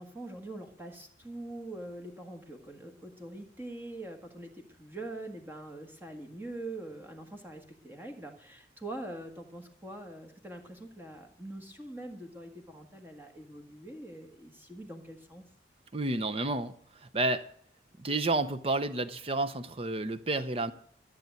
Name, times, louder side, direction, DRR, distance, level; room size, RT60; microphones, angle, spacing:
voice 1, 0.0-15.4, right 1 dB, 10° right, 1.6 m, -44 dB
voice 2, 15.9-16.7 17.1-17.4 18.0-20.7, right 2 dB, 30° right, 0.7 m, -30 dB
13.5 x 7.7 x 8.2 m
head